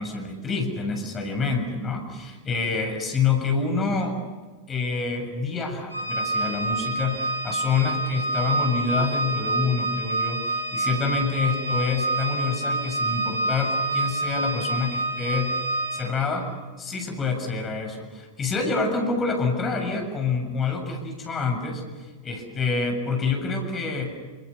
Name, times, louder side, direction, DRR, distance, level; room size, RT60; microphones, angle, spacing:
voice 1, 0.0-4.2 4.7-15.6 15.9-16.5 16.8-24.1, left 4 dB, 25° left, 4 dB, 7.1 m, -27 dB
Organ, 5.9-16.3, right 2 dB, 85° right, 5.7 m, -27 dB
29.5 x 28.0 x 7.1 m, 1.3 s
figure-of-eight pair, 90°, 0 cm